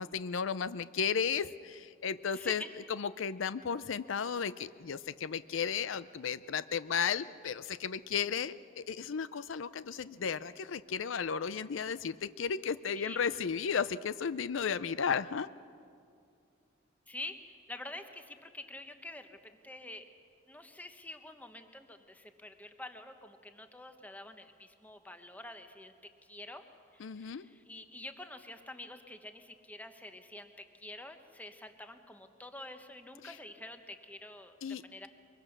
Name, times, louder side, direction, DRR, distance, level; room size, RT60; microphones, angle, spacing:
voice 1, 0.0-2.6 2.9-15.5 27.0-27.5 33.2-33.4 34.6-34.8, left 6 dB, 80° left, 15 dB, 0.5 m, -34 dB
voice 2, 2.3-2.7 13.0-13.2 17.1-20.1 20.5-25.9 26.3-26.6 26.9-35.1, left 1 dB, 10° left, 7 dB, 1.0 m, -47 dB
23.5 x 22.5 x 6.6 m, 2.4 s
head